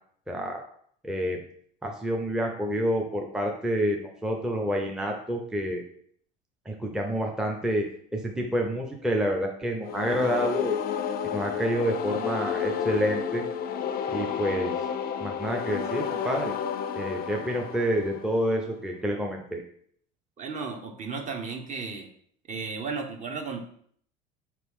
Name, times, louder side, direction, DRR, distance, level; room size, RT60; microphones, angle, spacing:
voice 1, 0.3-0.6 1.0-1.4 1.8-5.8 6.7-7.9 8.1-10.8 11.2-13.5 14.1-14.7 15.2-16.5 17.0-19.6, equal, 5° right, 1 dB, 0.5 m, -28 dB
sound 1, 9.8-18.7, left 7 dB, 45° left, 0.4 m, -31 dB
voice 2, 20.4-22.1 22.5-23.6, right 4 dB, 35° right, 3 dB, 0.8 m, -34 dB
3.9 x 2.9 x 3.5 m, 0.62 s
supercardioid pair, 85°, 21 cm